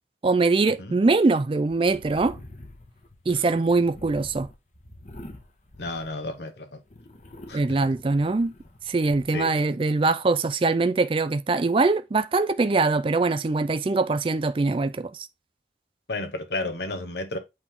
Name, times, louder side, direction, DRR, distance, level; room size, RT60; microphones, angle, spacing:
voice 1, 0.2-2.4 3.3-4.5 7.5-8.5 8.9-15.3, right 3 dB, 30° right, 0.4 m, -23 dB
sound 1, 1.7-6.5 6.9-9.3, left 1 dB, 40° left, 1.3 m, -46 dB
voice 2, 5.8-6.7 7.5-7.6 9.3-9.6 16.1-17.4, left 2 dB, 70° left, 1.2 m, -32 dB
8.4 x 3.4 x 3.7 m
head